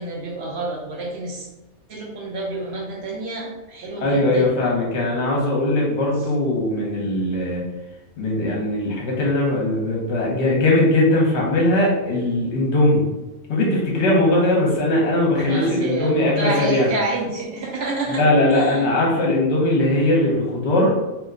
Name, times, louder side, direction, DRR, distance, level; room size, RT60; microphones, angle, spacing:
voice 1, 0.0-1.5 1.9-4.5 15.4-18.2 18.5-19.1, right 2 dB, 60° right, -2 dB, 0.8 m, -28 dB
voice 2, 4.0-7.6 8.2-13.0 13.5-16.9 18.2-20.9, left 1 dB, 55° left, -2 dB, 1.1 m, -20 dB
2.8 x 2.2 x 3.6 m, 1.0 s
omnidirectional pair, 1.4 m